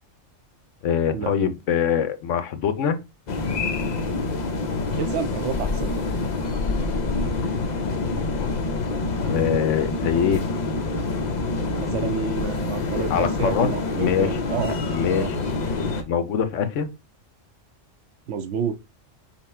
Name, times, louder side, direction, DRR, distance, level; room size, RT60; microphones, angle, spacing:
voice 1, 0.8-3.0 8.3-8.5 9.3-10.4 12.9-14.4 14.9-15.3 16.1-16.9, left 8 dB, 70° left, 1.0 m, -23 dB
sound 1, 3.3-16.0, left 3 dB, 45° left, 0.6 m, -26 dB
voice 2, 5.0-5.9 11.8-14.8 15.1-15.3 18.3-18.8, right 7 dB, 70° right, 1.0 m, -29 dB
5.7 x 2.2 x 4.2 m
omnidirectional pair, 1.3 m